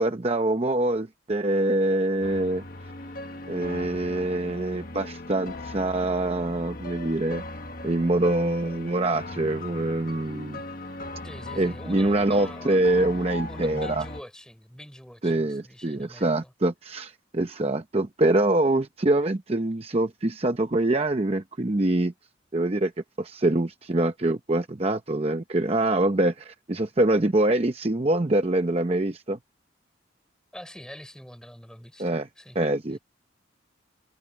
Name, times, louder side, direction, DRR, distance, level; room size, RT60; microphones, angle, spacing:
voice 1, 0.0-2.6 3.5-7.4 7.8-10.6 11.6-14.0 15.2-22.1 22.5-22.9 23.2-29.4 32.0-32.3 32.5-33.0, right 2 dB, 30° right, 0.8 m, -24 dB
sound 1, 2.2-14.2, left 2 dB, 45° left, 1.5 m, -38 dB
voice 2, 11.2-16.5 30.5-32.6 32.9-33.0, equal, 5° left, 4.7 m, -45 dB
head